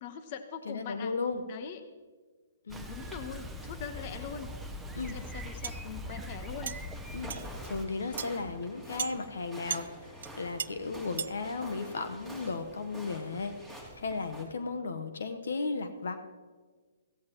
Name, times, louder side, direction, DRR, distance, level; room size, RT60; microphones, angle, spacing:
voice 1, 0.0-1.1 1.5-1.8 2.9-4.5 5.1-6.8, left 8 dB, 45° left, 9 dB, 1.1 m, -42 dB
voice 2, 0.7-1.4 2.7-2.9 4.9-5.1 7.1-7.3 7.6-9.8 10.4-13.5 14.0-16.2, left 4 dB, 70° left, 8 dB, 1.1 m, -35 dB
Bicycle, 2.7-7.8, equal, 5° right, 1.0 m, -41 dB
sound 1, 5.6-5.8 6.7-6.8 7.3-7.5 8.2-8.3 9.0-9.2 9.7-9.9 10.2-10.3 10.6-10.7 11.2-11.3, right 8 dB, 65° right, 0.3 m, -34 dB
sound 2, 6.9-14.4, equal, 10° left, 2.9 m, -47 dB
16.0 x 15.0 x 3.0 m, 1.4 s
hypercardioid pair, 130°, 0 cm